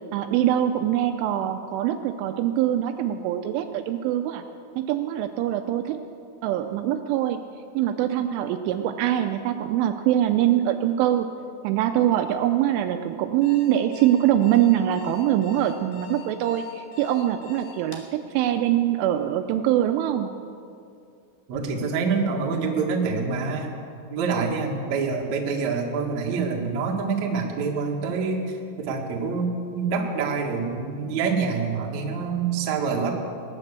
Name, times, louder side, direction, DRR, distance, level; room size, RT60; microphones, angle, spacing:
voice 1, 0.1-4.4 4.8-6.0 6.4-7.4 7.8-11.3 11.6-20.3, right 11 dB, 80° right, 7 dB, 2.9 m, -23 dB
Alarm, 13.2-18.1, left 6 dB, 60° left, 2.9 m, -44 dB
voice 2, 21.5-23.7 24.1-33.1, right 5 dB, 60° right, 0 dB, 1.9 m, -26 dB
20.5 x 9.9 x 6.7 m, 2.4 s
omnidirectional pair, 5.8 m